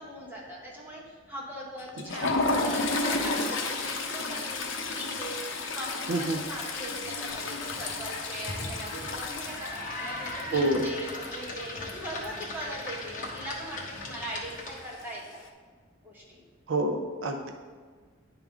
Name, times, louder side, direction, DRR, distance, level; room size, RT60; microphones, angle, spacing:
voice 1, 0.0-15.4 16.0-16.4, right 1 dB, 10° right, -4 dB, 1.3 m, -40 dB
Toilet flush, 1.8-12.6 12.8-13.1 13.4-13.6 14.5-15.0, left 3 dB, 75° left, 0.7 m, -32 dB
voice 2, 6.1-6.4 10.5-10.8 16.7-17.5, right 1 dB, 75° right, 4 dB, 0.6 m, -27 dB
sound 1, 7.3-15.0, left 2 dB, 45° left, 1.1 m, -39 dB
10.0 x 3.5 x 3.6 m, 1.5 s
head